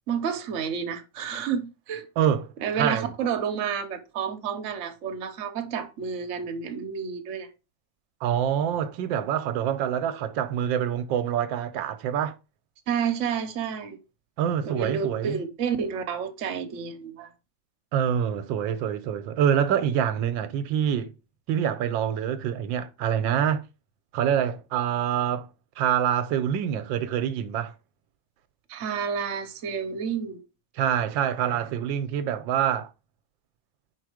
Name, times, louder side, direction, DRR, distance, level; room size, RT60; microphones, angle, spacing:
voice 1, 0.1-2.1 2.6-7.5 12.9-14.0 14.6-17.3 28.7-30.4, right 7 dB, 50° right, 1.0 m, -30 dB
voice 2, 2.2-3.1 8.2-12.3 14.4-15.4 17.9-21.1 21.5-23.6 24.1-25.5 25.8-27.7 30.8-32.9, right 9 dB, 90° right, 1.4 m, -26 dB
4.7 x 4.2 x 4.9 m
omnidirectional pair, 2.0 m